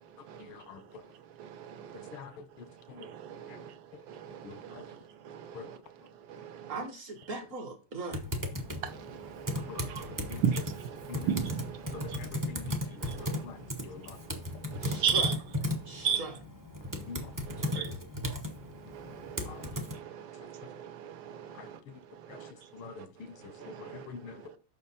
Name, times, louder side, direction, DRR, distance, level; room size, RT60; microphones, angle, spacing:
voice 1, 0.5-0.8 2.1-2.3 2.9-3.1 4.5-4.8 5.5-5.7 9.7-9.9 10.3-10.4 11.1-11.2 11.9-12.8 13.4-13.6 13.8-14.2 17.1-17.2 22.7-22.9 23.7-23.8 24.1-24.3, left 5 dB, 90° left, 1.9 m, -44 dB
voice 2, 1.4-2.2 3.0-3.7 4.1-5.0 5.2-5.8 6.3-6.7 8.8-12.2 13.0-13.4 14.7-15.3 16.0-16.2 17.5-17.9 18.9-21.8 22.3-22.5 23.6-24.1, right 7 dB, 70° right, 1.5 m, -36 dB
voice 3, 6.7-8.2 14.8-15.4 15.9-16.4 17.7-18.1, right 2 dB, 50° right, 1.1 m, -39 dB
Typing, 8.1-19.9, left 1 dB, 30° right, 0.3 m, -36 dB
6.7 x 5.9 x 4.2 m
omnidirectional pair, 2.3 m